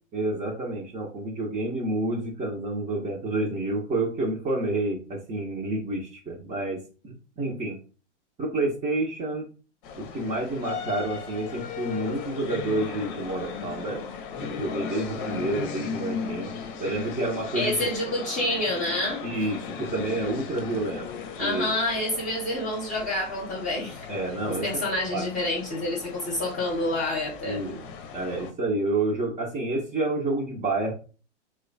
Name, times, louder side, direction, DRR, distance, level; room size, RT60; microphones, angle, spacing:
voice 1, 0.1-7.8 8.4-9.5 10.0-14.0 14.4-16.5 16.8-17.8 19.2-21.1 21.4-21.7 24.1-24.7 25.1-25.2 27.4-27.8 28.1-30.9, right 2 dB, 20° right, -3 dB, 0.8 m, -29 dB
sound 1, 9.8-28.5, left 6 dB, 45° left, 0.8 m, -37 dB
voice 2, 17.5-19.2 21.4-24.1 24.5-27.6, left 1 dB, 20° left, -2 dB, 1.0 m, -28 dB
3.0 x 2.3 x 3.8 m, 0.36 s
hypercardioid pair, 110°, 36 cm